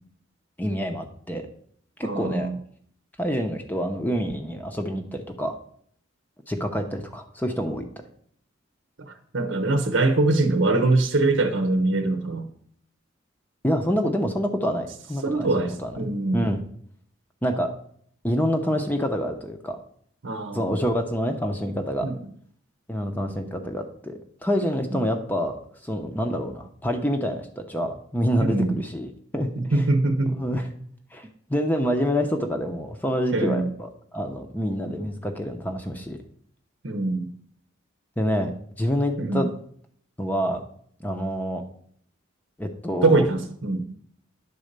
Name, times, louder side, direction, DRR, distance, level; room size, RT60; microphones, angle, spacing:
voice 1, 0.6-1.4 2.0-2.5 3.2-5.6 6.5-7.9 13.6-15.9 16.3-16.6 17.4-17.7 18.2-19.8 20.5-22.1 22.9-29.8 30.4-30.7 31.1-36.2 38.2-38.5 38.8-39.5 40.2-40.6 41.0-41.6 42.6-43.2, equal, 10° left, 4 dB, 0.7 m, -27 dB
voice 2, 2.0-2.6 9.0-12.5 15.2-16.4 20.2-20.7 22.0-22.2 24.9-25.0 28.4-28.8 29.6-30.4 33.3-33.7 36.8-37.3 39.2-39.4 43.0-43.8, right 2 dB, 75° right, 7 dB, 0.9 m, -23 dB
10.0 x 4.1 x 6.6 m, 0.62 s
head